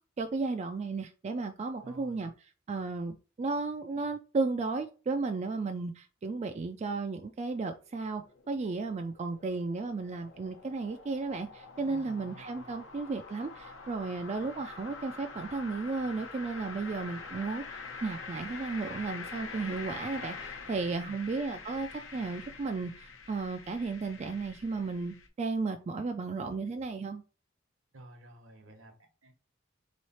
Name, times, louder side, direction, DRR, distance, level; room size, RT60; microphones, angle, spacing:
voice 1, 0.2-2.3 2.7-27.2, right 3 dB, 35° right, 0.3 m, -34 dB
voice 2, 1.8-2.3 11.8-12.8 20.8-21.2 27.9-29.3, right 1 dB, 75° right, 1.1 m, -52 dB
sound 1, 8.0-25.3, left 4 dB, 80° left, 0.9 m, -46 dB
3.9 x 3.1 x 4.2 m
head